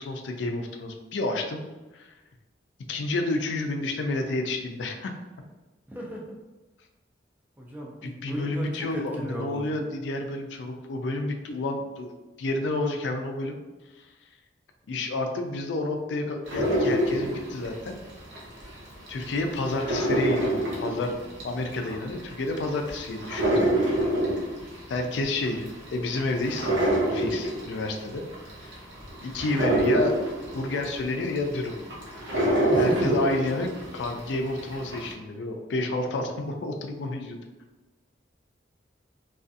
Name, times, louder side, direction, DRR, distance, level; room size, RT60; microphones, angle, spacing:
voice 1, 0.0-1.6 1.9-2.1 2.9-5.1 8.0-12.1 12.4-13.6 14.0-14.1 14.9-18.0 19.1-21.2 21.4-23.7 24.9-26.7 27.1-28.3 28.6-28.7 29.2-30.2 30.5-31.7 32.8-37.4, left 2 dB, 70° left, 3 dB, 0.3 m, -30 dB
voice 2, 5.9-6.2 7.6-9.6 32.7-33.1, equal, 10° right, -2 dB, 0.3 m, -35 dB
sound 1, 16.5-18.7 19.1-34.2 34.6-35.1, right 1 dB, 70° right, 0.7 m, -26 dB
2.4 x 2.3 x 2.5 m, 1.2 s
head